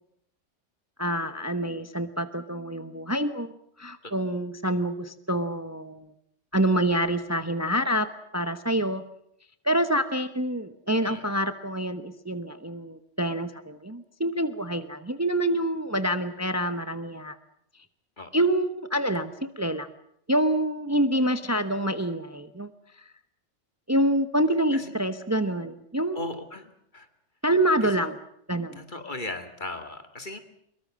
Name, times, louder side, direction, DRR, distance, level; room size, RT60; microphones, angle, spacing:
voice 1, 1.0-3.5 3.8-6.1 6.5-9.0 9.6-17.4 18.3-19.9 20.3-22.7 23.9-26.2 27.4-28.1 28.5-28.8, right 1 dB, 15° right, 10 dB, 1.0 m, -26 dB
voice 2, 26.1-27.1 27.8-28.1 28.8-30.4, left 2 dB, 40° left, 8 dB, 2.4 m, -37 dB
24.0 x 23.0 x 7.6 m, 0.71 s
omnidirectional pair, 1.2 m